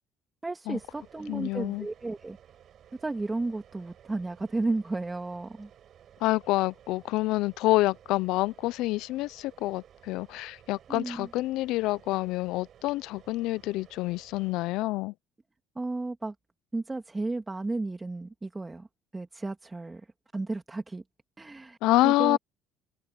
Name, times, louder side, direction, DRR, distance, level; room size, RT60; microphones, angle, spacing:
voice 1, 0.4-2.4 3.0-5.7 10.9-11.3 15.8-16.4 16.7-18.9 19.1-20.1 20.3-21.0 21.4-21.8 22.0-22.4, right 2 dB, 15° right, 1.9 m, -33 dB
sound 1, 0.7-14.5, right 10 dB, 55° right, 4.4 m, -56 dB
voice 2, 1.3-1.9 6.2-15.1 21.8-22.4, left 18 dB, 80° left, 0.5 m, -27 dB
supercardioid pair, 85°, 0 cm